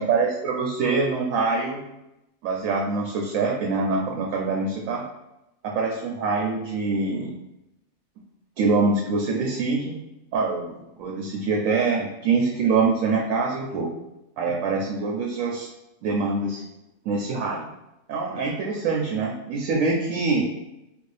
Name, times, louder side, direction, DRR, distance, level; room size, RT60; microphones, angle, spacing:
voice 1, 0.0-1.8 2.4-5.0 5.6-7.3 8.6-9.9 10.3-13.9 14.4-15.7 16.0-16.6 17.0-17.7 18.1-20.4, right 4 dB, 80° right, 0 dB, 1.0 m, -24 dB
3.4 x 2.5 x 3.2 m, 0.91 s
omnidirectional pair, 1.4 m